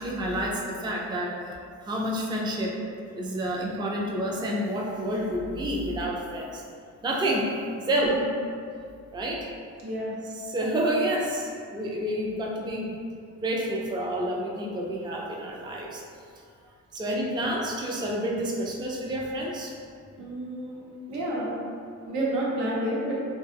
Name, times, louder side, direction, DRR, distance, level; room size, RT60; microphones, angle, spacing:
voice 1, 0.0-1.4 1.8-2.8 3.2-6.6 7.0-7.5 7.8-8.2 9.1-9.5 10.4-12.9 13.4-16.0 16.9-19.7, right 1 dB, 15° right, -2 dB, 0.4 m, -29 dB
voice 2, 9.8-10.1 20.2-20.8 21.1-21.5 22.0-23.3, right 1 dB, 90° right, -6 dB, 0.9 m, -29 dB
2.9 x 2.2 x 3.3 m, 2.3 s
cardioid pair, 90°, 30 cm